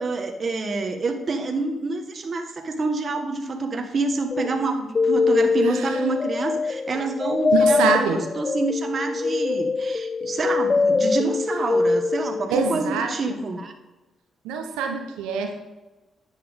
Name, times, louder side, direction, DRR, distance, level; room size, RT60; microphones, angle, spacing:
voice 1, 0.0-13.7, right 3 dB, 50° right, 5 dB, 1.6 m, -27 dB
sound 1, 4.3-12.6, left 4 dB, 40° left, 0.3 m, -23 dB
voice 2, 5.6-6.0 7.5-8.2 12.5-13.4 14.4-15.6, right 5 dB, 90° right, 4 dB, 1.0 m, -25 dB
10.0 x 8.7 x 3.7 m, 1.1 s
supercardioid pair, 55°, 0 cm